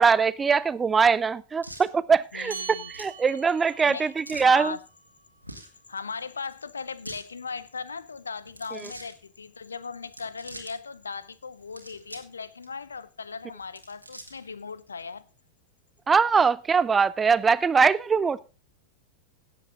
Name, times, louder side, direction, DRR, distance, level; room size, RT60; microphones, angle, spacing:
voice 1, 0.0-4.8 16.1-18.4, right 5 dB, 15° right, 0.4 m, -22 dB
sound 1, 1.6-1.9 2.9-3.2 4.2-4.5 5.4-5.8 6.8-7.3 8.4-9.1 10.0-10.7 11.6-12.3 12.6-12.7 13.6-14.5, right 1 dB, 90° right, 2.0 m, -44 dB
voice 2, 2.3-2.9 3.8-4.8 5.9-15.3, left 5 dB, 75° left, 0.6 m, -38 dB
sound 2, 2.5-7.3, right 7 dB, 70° right, 1.9 m, -45 dB
16.5 x 7.7 x 3.8 m
figure-of-eight pair, 90°, 0 cm